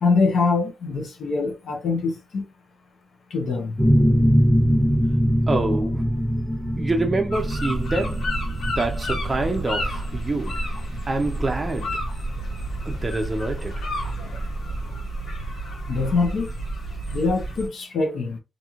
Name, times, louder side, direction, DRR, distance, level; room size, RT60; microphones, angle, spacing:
voice 1, 0.0-2.4 3.3-3.8 15.9-16.5 17.1-18.4, left 4 dB, 65° left, 0.7 m, -23 dB
sound 1, 3.8-13.2, equal, 5° right, 0.8 m, -22 dB
voice 2, 5.5-8.3 8.7-10.6 11.1-12.0 12.9-13.8, right 2 dB, 25° right, 0.4 m, -27 dB
sound 2, 7.3-17.7, right 1 dB, 90° left, 1.2 m, -30 dB
2.9 x 2.5 x 2.4 m
wide cardioid pair, 160°, 0 cm